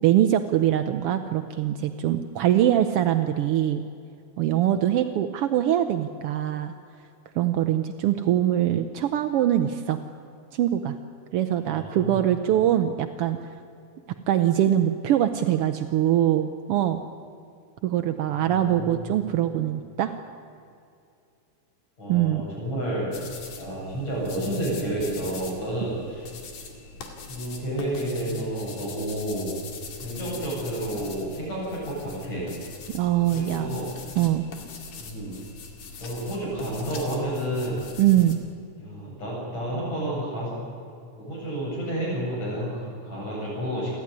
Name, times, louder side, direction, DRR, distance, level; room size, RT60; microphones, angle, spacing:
voice 1, 0.0-3.8 4.4-6.7 7.4-10.0 10.5-11.0 11.3-13.4 14.3-17.0 17.8-20.1 22.1-22.4 32.9-33.8 34.2-34.4 38.0-38.4, right 11 dB, 80° right, 8 dB, 1.3 m, -23 dB
voice 2, 11.7-12.2 18.3-19.1 22.0-23.1 23.6-26.3 27.3-29.6 30.0-32.4 33.3-33.9 35.0-35.4 36.0-37.8 38.8-40.5 41.2-44.0, right 1 dB, 60° left, -5 dB, 9.1 m, -30 dB
sound 1, 23.1-38.3, left 5 dB, 90° left, 3.7 m, -42 dB
29.0 x 12.5 x 9.7 m, 2.5 s
omnidirectional pair, 3.5 m